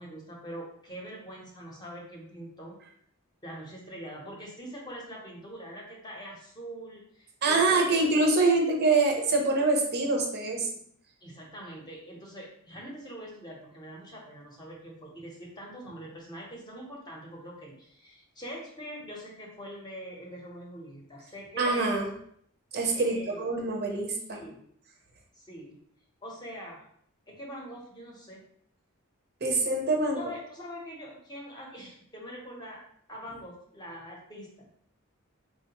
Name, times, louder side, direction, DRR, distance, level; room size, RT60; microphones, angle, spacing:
voice 1, 0.0-2.8 3.4-8.1 8.4-8.5 11.2-22.0 22.9-23.4 24.3-24.6 25.3-25.8 26.2-26.8 27.3-28.4 30.1-32.8 33.1-34.5, equal, 20° left, -2 dB, 0.7 m, -43 dB
voice 2, 7.4-10.7 21.6-22.1 22.7-24.4 29.4-30.2, right 3 dB, 50° right, 1 dB, 0.6 m, -25 dB
3.5 x 2.2 x 2.8 m, 0.65 s
head